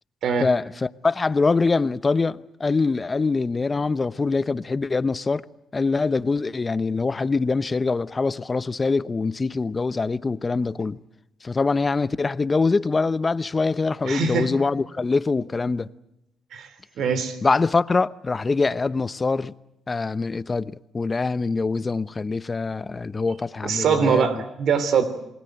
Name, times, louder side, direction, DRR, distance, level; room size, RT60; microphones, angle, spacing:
voice 1, 0.4-5.4 5.7-11.0 11.4-15.9 17.4-19.5 19.9-24.3, left 4 dB, 30° left, 0.8 m, -24 dB
voice 2, 14.0-14.5 16.5-16.7 17.0-17.4 23.6-25.0, right 6 dB, 70° right, 3.4 m, -22 dB
28.0 x 20.5 x 7.9 m
cardioid pair, 90°, 0 cm